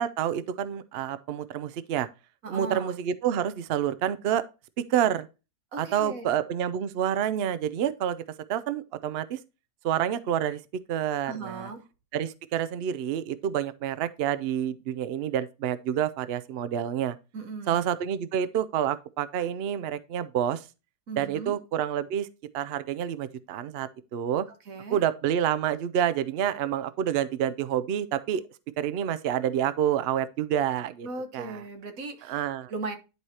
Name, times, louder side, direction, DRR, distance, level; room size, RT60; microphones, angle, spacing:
voice 1, 0.0-2.1 2.5-4.4 4.9-5.3 5.8-8.2 8.5-9.4 9.8-10.6 10.9-11.7 12.1-17.2 17.7-20.6 21.2-22.3 22.5-24.5 24.9-28.4 28.8-31.1 31.3-31.6 32.3-32.7, right 10 dB, 75° right, 0.5 m, -28 dB
voice 2, 2.4-2.9 5.7-6.3 11.3-11.8 17.3-17.8 21.1-21.5 24.7-25.0 31.0-32.4 32.7-32.9, right 3 dB, 60° right, 1.6 m, -37 dB
11.0 x 4.8 x 2.8 m
omnidirectional pair, 1.7 m